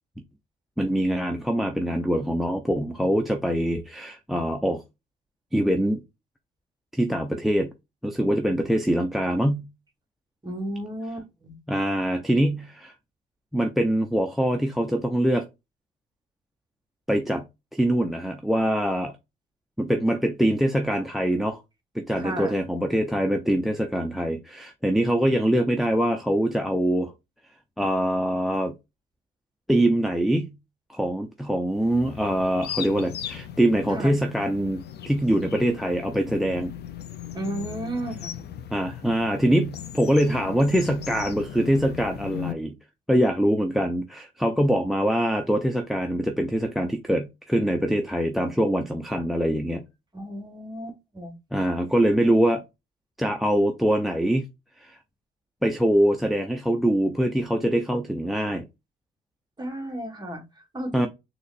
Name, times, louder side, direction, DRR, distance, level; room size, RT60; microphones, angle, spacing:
voice 1, 0.8-4.8 5.5-6.0 6.9-7.7 8.0-9.7 11.7-12.9 13.5-15.5 17.1-17.4 17.7-19.1 19.8-21.6 21.9-27.1 27.8-28.7 29.7-30.5 30.9-36.7 38.7-42.7 43.1-49.8 51.5-52.6 53.2-54.5 54.8-55.0 55.6-58.7 60.9-61.1, right 1 dB, ahead, 0.5 m, -24 dB
voice 2, 10.4-11.6 22.1-22.6 33.9-34.1 37.3-38.4 50.1-51.4 59.6-61.1, right 1 dB, 20° right, 1.3 m, -34 dB
sound 1, 31.7-42.5, left 10 dB, 55° left, 0.5 m, -38 dB
3.9 x 2.9 x 2.5 m
cardioid pair, 90°, 20 cm